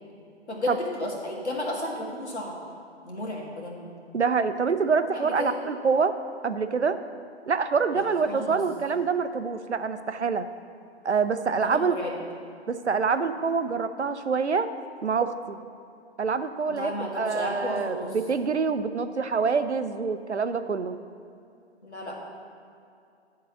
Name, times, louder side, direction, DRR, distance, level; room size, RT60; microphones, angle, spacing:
voice 1, 0.5-2.6 3.0-3.8 5.1-5.6 7.9-8.6 11.6-12.2 16.7-18.2 21.8-22.2, left 1 dB, 80° left, -1 dB, 2.0 m, -33 dB
voice 2, 4.1-6.2 6.4-7.0 7.5-10.5 11.0-12.0 12.7-14.7 15.0-15.6 16.2-16.9 17.2-21.0, right 5 dB, 90° right, 10 dB, 0.6 m, -26 dB
10.5 x 3.9 x 6.8 m, 2.5 s
figure-of-eight pair, 125°, 33 cm